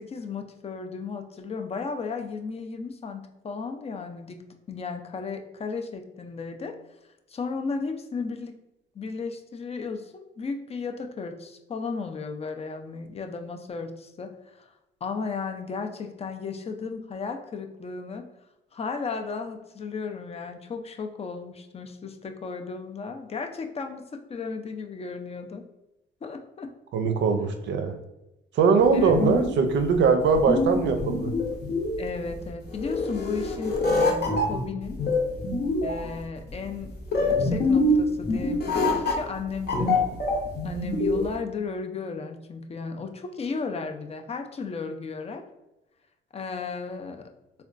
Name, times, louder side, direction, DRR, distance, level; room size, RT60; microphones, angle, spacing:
voice 1, 0.0-4.4 4.7-6.8 7.3-8.5 8.9-14.7 15.0-18.3 18.7-25.6 26.2-26.7 28.9-29.1 32.0-35.0 35.8-40.0 40.6-45.4 46.3-47.3, left 4 dB, 30° left, 5 dB, 0.4 m, -34 dB
voice 2, 26.9-27.9 28.6-31.3, right 5 dB, 65° right, 7 dB, 0.4 m, -21 dB
sound 1, 28.8-41.3, left 2 dB, 55° left, 0.8 m, -25 dB
3.6 x 2.2 x 2.4 m, 0.95 s
cardioid pair, 90°, 20 cm